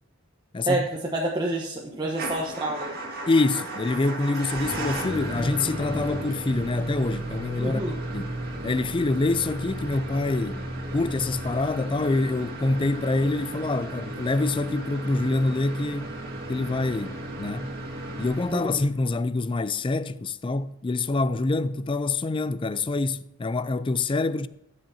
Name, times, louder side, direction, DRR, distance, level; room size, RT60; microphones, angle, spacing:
voice 1, 0.5-0.9 3.3-8.3 8.6-10.6 10.9-16.2 16.5-17.7 18.2-24.5, left 3 dB, 25° left, 0.4 m, -26 dB
voice 2, 1.1-2.9 7.6-8.0 18.5-18.8, right 1 dB, 20° right, 1.1 m, -28 dB
Motor vehicle (road) / Engine starting / Idling, 2.1-19.1, right 1 dB, 50° right, 2.2 m, -34 dB
13.5 x 8.0 x 2.8 m
head